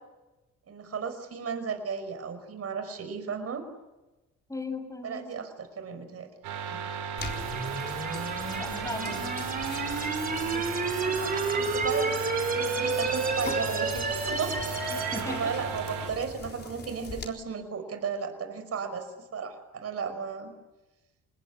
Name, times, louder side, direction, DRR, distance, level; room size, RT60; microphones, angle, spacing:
voice 1, 0.7-3.6 5.0-6.3 10.4-10.7 11.0-14.6 14.8-19.1 19.3-20.6, right 6 dB, 55° right, 8 dB, 5.4 m, -35 dB
voice 2, 4.5-5.4 6.7-6.8 8.6-9.4 14.9-15.4, left 2 dB, 10° left, 8 dB, 6.3 m, -37 dB
sound 1, 6.4-16.1, right 7 dB, 85° right, 5.9 m, -35 dB
sound 2, 7.2-17.3, left 3 dB, 35° left, 3.9 m, -42 dB
sound 3, 7.2-15.2, right 3 dB, 30° right, 5.0 m, -31 dB
27.5 x 20.5 x 9.9 m, 1.1 s
cardioid pair, 90°, 30 cm